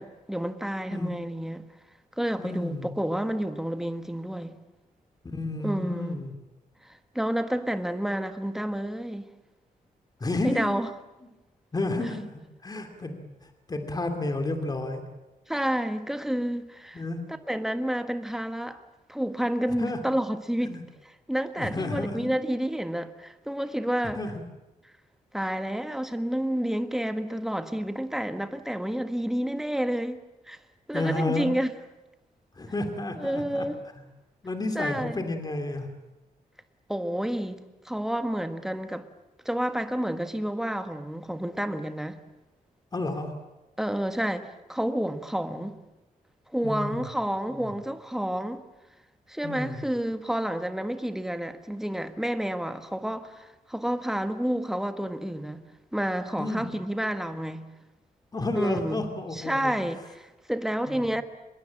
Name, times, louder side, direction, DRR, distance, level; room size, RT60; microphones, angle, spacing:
voice 1, 0.0-1.6 2.2-4.5 5.6-6.2 6.8-9.3 10.4-10.9 15.5-17.0 17.5-18.8 19.1-24.2 25.3-30.6 30.9-31.7 33.2-33.8 34.7-35.2 36.9-37.6 37.8-39.1 39.4-42.2 43.8-45.7 46.5-48.6 49.3-55.6 55.9-57.7 58.6-61.2, equal, 5° right, 1.4 m, -30 dB
voice 2, 2.4-2.9 5.3-6.3 10.2-10.8 11.7-13.2 13.7-15.0 16.9-17.2 19.8-20.0 20.6-20.8 21.6-22.3 24.0-24.4 30.9-31.5 32.6-33.7 34.4-35.9 42.9-43.3 46.6-47.1 47.6-47.7 49.4-49.8 56.4-56.6 58.3-59.7 60.9-61.0, left 2 dB, 25° left, 2.7 m, -31 dB
25.0 x 21.5 x 8.8 m
wide cardioid pair, 135°, 15 cm